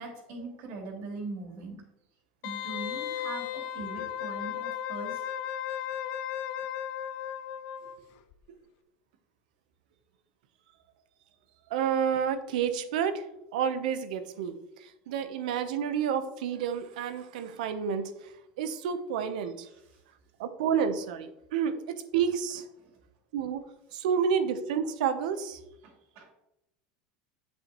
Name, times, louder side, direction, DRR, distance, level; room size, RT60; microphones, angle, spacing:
voice 1, 0.0-1.8 2.4-5.3 7.8-7.9 19.7-20.0 22.8-22.9 25.8-26.3, right 3 dB, 65° right, 0 dB, 2.9 m, -41 dB
Wind instrument woodwind instrument, 2.4-8.0 8.3-8.4, left 10 dB, 65° left, 0.7 m, -35 dB
voice 2, 11.7-13.3 13.5-18.1 18.6-19.7 20.4-22.6 23.3-23.6 23.9-25.6, right 7 dB, 80° right, 10 dB, 0.8 m, -30 dB
8.0 x 7.0 x 3.0 m, 0.87 s
supercardioid pair, 115°, 4 cm